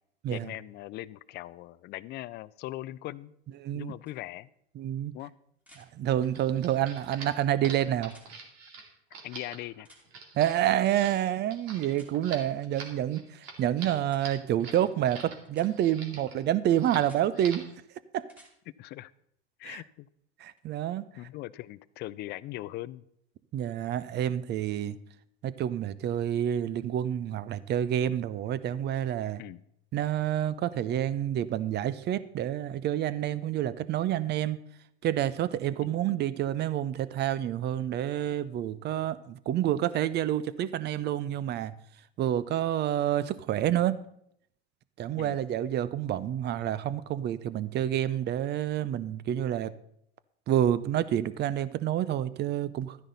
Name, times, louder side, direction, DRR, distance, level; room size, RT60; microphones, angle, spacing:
voice 1, 0.3-3.3 3.7-4.5 5.1-5.3 9.2-9.9 18.8-19.1 19.6-20.1 21.1-23.0 29.4-29.6 45.2-45.4, left 16 dB, 30° left, 19 dB, 0.4 m, -40 dB
voice 2, 3.6-3.9 4.8-5.1 5.8-8.1 10.3-17.6 18.1-18.3 19.6-19.8 20.4-21.0 23.5-25.0 25.4-29.4 29.9-34.6 35.0-41.7 42.2-44.0 45.0-49.7 50.5-53.0, right 11 dB, 30° right, 17 dB, 0.6 m, -28 dB
sound 1, 4.1-4.2 5.6-5.9 8.0-8.3 9.8-10.1 11.9-12.1 14.1-14.2 15.5-15.7 16.9-17.2 18.2-18.5 20.6-20.7, equal, 5° right, 2.5 m, -56 dB
sound 2, 6.2-15.4 15.6-16.4 16.7-17.1 17.3-17.7, right 4 dB, 60° right, 2.6 m, -45 dB
12.0 x 9.9 x 4.1 m, 0.73 s
hypercardioid pair, 95°, 33 cm